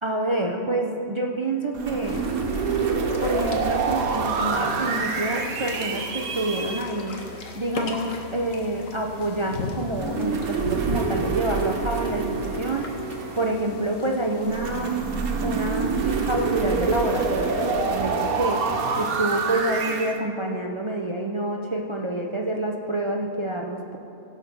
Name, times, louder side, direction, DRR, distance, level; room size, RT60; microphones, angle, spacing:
voice 1, 0.0-2.2 3.2-7.2 7.5-15.0 15.4-24.0, right 1 dB, 40° right, 1 dB, 0.4 m, -27 dB
sound 1, 1.7-6.8 9.9-13.7 14.4-20.2, right 4 dB, 85° right, 1.4 m, -27 dB
sound 2, 2.0-17.9, left 4 dB, 65° left, 1.5 m, -38 dB
16.5 x 5.8 x 5.9 m, 2.9 s
omnidirectional pair, 1.5 m